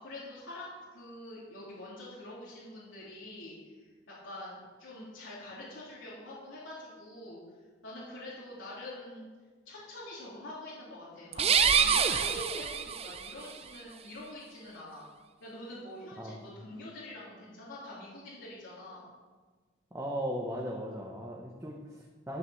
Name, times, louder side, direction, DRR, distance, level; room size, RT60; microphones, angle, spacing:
voice 1, 0.0-7.4 7.8-9.3 9.7-15.0 15.4-19.1, left 1 dB, 85° left, -8 dB, 3.4 m, -45 dB
sound 1, 11.3-13.3, right 7 dB, 30° right, 0.5 m, -26 dB
voice 2, 19.9-22.4, equal, 15° right, -2 dB, 1.1 m, -37 dB
12.5 x 5.8 x 7.2 m, 1.4 s
head